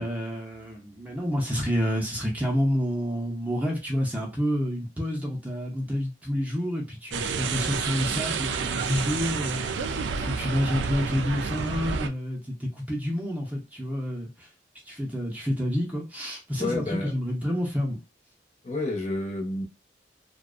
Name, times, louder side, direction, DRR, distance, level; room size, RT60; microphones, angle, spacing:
voice 1, 0.0-14.5 14.9-18.0, equal, 10° right, 0.5 m, -29 dB
sound 1, 7.1-12.1, right 5 dB, 90° right, 0.3 m, -30 dB
voice 2, 16.6-17.1 18.6-19.6, left 2 dB, 40° left, 0.7 m, -30 dB
2.5 x 2.1 x 2.4 m
head